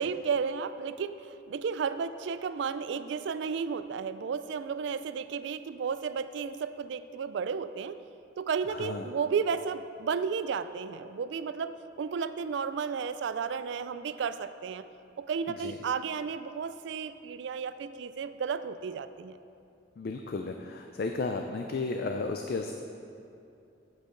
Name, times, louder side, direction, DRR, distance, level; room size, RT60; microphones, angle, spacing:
voice 1, 0.0-8.0 8.4-14.9 15.2-19.4, right 6 dB, 70° right, 13 dB, 0.3 m, -33 dB
voice 2, 8.7-9.1 15.6-15.8 20.0-22.7, left 3 dB, 50° left, 4 dB, 0.3 m, -33 dB
8.4 x 8.1 x 3.8 m, 2.7 s
head